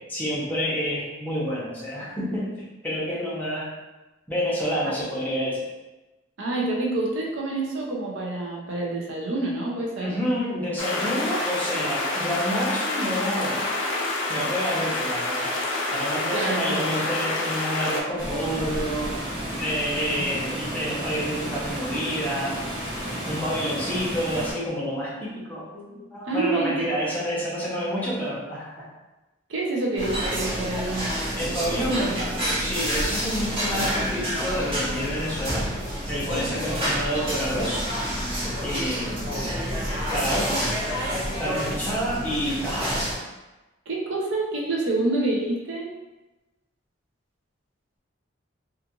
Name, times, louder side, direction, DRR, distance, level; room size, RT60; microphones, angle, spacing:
voice 1, 0.1-2.5 2.8-3.7 4.3-5.6 10.0-13.6 14.3-15.5 15.9-19.1 19.6-22.6 23.3-28.9 31.4-32.0 32.6-35.6 36.1-37.8 38.6-39.2 40.1-40.7 41.4-43.1, equal, 10° left, -7 dB, 0.6 m, -28 dB
voice 2, 6.4-10.2 16.3-16.8 20.2-20.3 26.3-27.0 29.5-31.1 31.7-32.4 39.1-39.5 43.9-45.9, right 2 dB, 75° right, -2 dB, 0.6 m, -28 dB
sound 1, 10.8-18.0, left 2 dB, 75° left, 0.5 m, -27 dB
Water, 18.2-24.5, equal, 55° right, 1.2 m, -32 dB
sound 2, 30.0-43.1, equal, 25° right, 0.8 m, -28 dB
2.5 x 2.4 x 2.8 m, 1.1 s
head